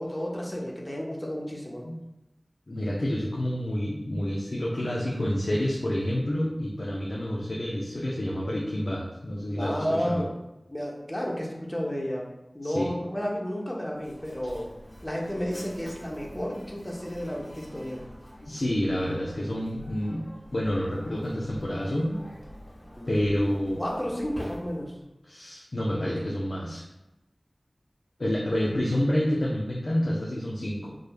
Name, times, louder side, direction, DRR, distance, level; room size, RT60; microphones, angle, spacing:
voice 1, 0.0-1.9 9.6-10.3 10.7-12.3 12.5-14.7 15.0-18.0 23.0-24.9, equal, 20° left, -2 dB, 0.8 m, -32 dB
voice 2, 2.7-10.2 12.6-12.9 18.4-20.2 20.5-22.2 23.1-23.8 25.3-26.9 28.2-31.0, equal, 65° left, -4 dB, 0.6 m, -28 dB
Mechanisms, 13.9-25.1, equal, 5° left, 1.3 m, -47 dB
3.7 x 3.3 x 2.2 m, 0.96 s
wide cardioid pair, 40°, 0 cm